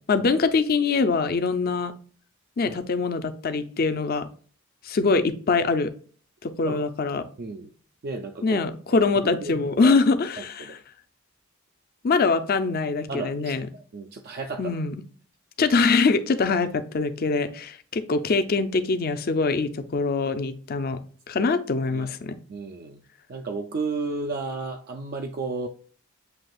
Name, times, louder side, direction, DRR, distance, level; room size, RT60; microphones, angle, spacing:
voice 1, 0.0-1.9 2.6-4.3 4.8-5.9 6.4-7.2 8.4-10.8 12.0-13.7 14.6-15.0 15.6-21.0 21.3-22.4, left 4 dB, 40° left, 0.4 m, -23 dB
voice 2, 7.4-7.7 8.0-9.0 9.4-10.0 10.4-10.8 13.1-14.8 21.3-21.5 21.9-22.1 22.5-23.0 23.3-25.7, right 3 dB, 45° right, 0.3 m, -33 dB
7.6 x 2.8 x 2.3 m
head